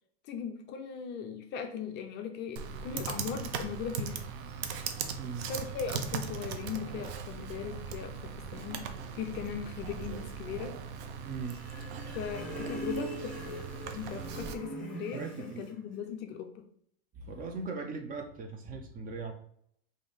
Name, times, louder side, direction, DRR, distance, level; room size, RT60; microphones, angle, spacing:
voice 1, 0.3-4.2 5.5-10.7 12.1-13.6 13.9-16.7, left 7 dB, 35° left, 5 dB, 0.4 m, -39 dB
Computer keyboard, 2.6-14.5, right 6 dB, 70° right, 0.6 m, -39 dB
voice 2, 5.2-5.5 11.2-11.6 15.1-15.7 17.1-19.3, right 4 dB, 25° right, 5 dB, 0.5 m, -39 dB
sound 1, 11.4-15.8, right 2 dB, 5° left, 1.0 m, -41 dB
3.2 x 2.6 x 3.9 m, 0.66 s
supercardioid pair, 135°, 32 cm